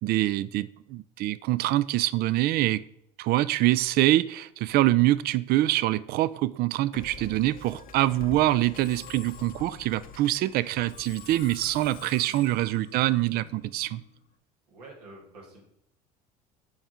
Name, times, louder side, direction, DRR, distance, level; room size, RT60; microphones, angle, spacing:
voice 1, 0.0-2.8 3.2-14.0, right 15 dB, 50° right, 17 dB, 0.4 m, -25 dB
Musical instrument, 6.9-14.3, left 5 dB, 45° left, 0.7 m, -46 dB
voice 2, 14.7-15.6, right 2 dB, 90° right, -3 dB, 1.9 m, -49 dB
5.7 x 4.6 x 4.3 m, 0.74 s
hypercardioid pair, 75°, 20 cm